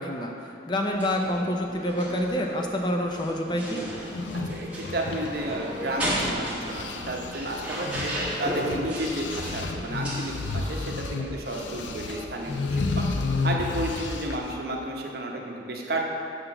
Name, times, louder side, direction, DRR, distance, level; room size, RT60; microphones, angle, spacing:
voice 1, 0.0-3.8, left 1 dB, 25° left, 2 dB, 0.4 m, -27 dB
sound 1, 0.9-13.8, equal, 10° right, 1.1 m, -36 dB
sound 2, 4.0-6.3 6.6-14.5, left 3 dB, 80° left, 0.5 m, -32 dB
voice 2, 4.5-8.1 8.4-13.1 13.4-16.0, right 1 dB, 55° right, 0 dB, 0.8 m, -32 dB
6.6 x 3.9 x 5.8 m, 2.5 s
head